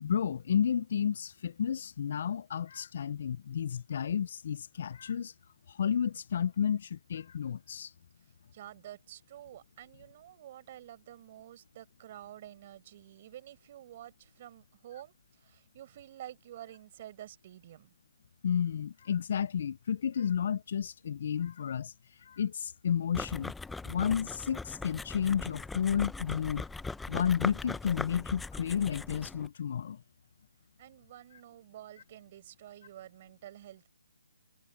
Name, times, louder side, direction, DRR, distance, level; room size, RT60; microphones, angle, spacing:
voice 1, 0.0-5.3 5.8-7.9 18.4-21.9 22.3-23.5 23.9-26.6 27.1-30.0, left 8 dB, 50° left, 0.6 m, -31 dB
voice 2, 8.5-17.9 30.8-33.9, right 12 dB, 35° right, 6.2 m, -49 dB
sound 1, 23.1-29.5, left 3 dB, 5° left, 0.7 m, -40 dB
hypercardioid pair, 155°, 0 cm